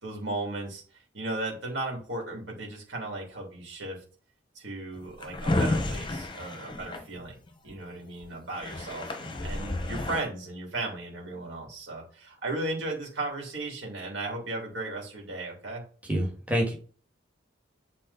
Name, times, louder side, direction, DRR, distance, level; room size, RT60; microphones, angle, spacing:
voice 1, 0.0-4.0 4.5-7.3 7.6-15.8, right 2 dB, 70° right, -1 dB, 3.1 m, -36 dB
Drawer open or close, 5.0-7.7 8.2-8.3 8.5-10.2, left 2 dB, 25° left, 0.9 m, -31 dB
voice 2, 16.0-16.7, equal, 10° right, -2 dB, 2.0 m, -27 dB
7.5 x 4.1 x 4.2 m, 0.40 s
head